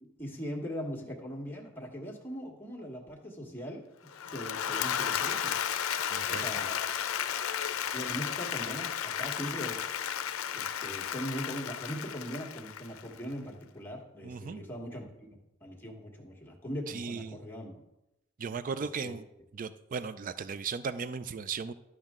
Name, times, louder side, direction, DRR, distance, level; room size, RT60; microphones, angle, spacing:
voice 1, 0.0-3.8 4.3-5.5 6.3-6.8 7.9-9.9 10.5-15.1 15.6-17.8 19.0-19.2, equal, 10° left, -1 dB, 1.4 m, -40 dB
Applause / Crowd, 4.1-13.3, left 9 dB, 80° left, 0.5 m, -33 dB
voice 2, 6.1-6.4 14.2-14.6 16.9-17.4 18.4-19.2 19.5-21.7, right 5 dB, 40° right, 13 dB, 0.4 m, -36 dB
12.0 x 6.3 x 3.6 m, 0.90 s
head